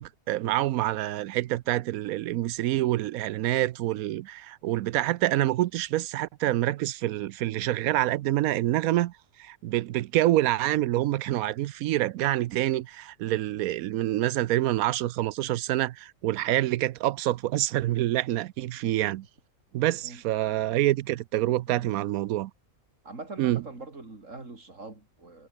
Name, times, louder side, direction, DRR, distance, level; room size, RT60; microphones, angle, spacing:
voice 1, 0.0-19.3 19.7-22.5 23.4-23.6, right 15 dB, 85° right, 1.0 m, -27 dB
voice 2, 21.7-22.0 23.0-25.5, right 3 dB, 60° right, 4.1 m, -43 dB
omnidirectional pair, 1.5 m